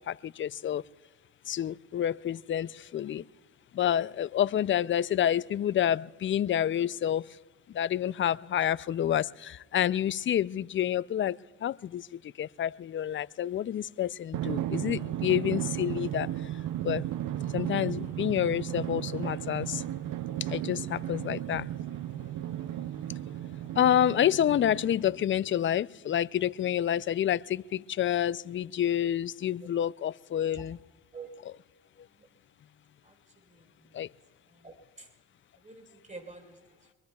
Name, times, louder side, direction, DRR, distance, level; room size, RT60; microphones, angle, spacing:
voice 1, 0.4-0.8 1.5-3.2 3.8-7.2 7.8-11.4 11.6-12.0 12.4-16.3 16.8-17.0 17.5-19.8 20.5-21.6 23.8-30.8 34.0-34.1, left 10 dB, 40° left, 19 dB, 0.4 m, -28 dB
Drum, 14.3-25.4, right 12 dB, 80° right, 0.6 m, -35 dB
voice 2, 33.4-34.0 34.5-35.1 35.6-36.9, right 4 dB, 20° right, 3 dB, 4.2 m, -48 dB
24.5 x 22.5 x 2.3 m, 1.2 s
cardioid pair, 80°, 33 cm